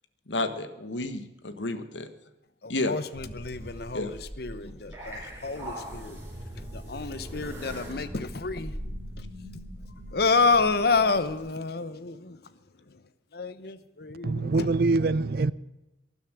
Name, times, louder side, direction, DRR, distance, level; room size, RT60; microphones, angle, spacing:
voice 1, 0.3-2.1 2.7-2.9 3.9-4.1 4.6-4.8, left 2 dB, 85° left, 1.4 m, -31 dB
voice 2, 2.6-6.2 6.6-8.7 9.2-9.3 10.1-12.4 12.9-13.0 13.3-14.7, left 4 dB, 60° left, 0.9 m, -29 dB
sound 1, 3.1-11.4, equal, 15° right, 4.8 m, -41 dB
voice 3, 14.2-15.5, right 3 dB, 55° right, 0.5 m, -24 dB
13.0 x 11.5 x 7.7 m
head